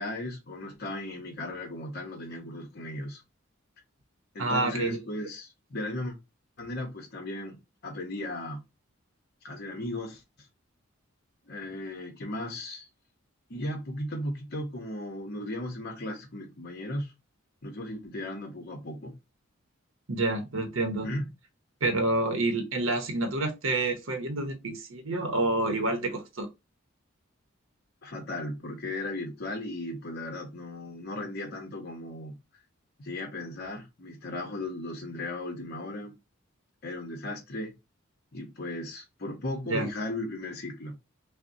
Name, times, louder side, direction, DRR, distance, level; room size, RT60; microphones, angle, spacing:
voice 1, 0.0-3.2 4.3-6.2 6.6-7.6 7.8-8.6 9.4-10.2 11.5-12.9 13.5-17.1 17.6-19.1 21.0-21.3 28.0-32.4 33.0-36.1 36.8-37.7 38.3-40.9, left 1 dB, 50° left, 0.9 m, -36 dB
voice 2, 4.4-5.0 20.1-21.1 21.8-26.5 39.7-39.9, right 2 dB, 70° right, 0.8 m, -28 dB
5.5 x 2.1 x 2.7 m
head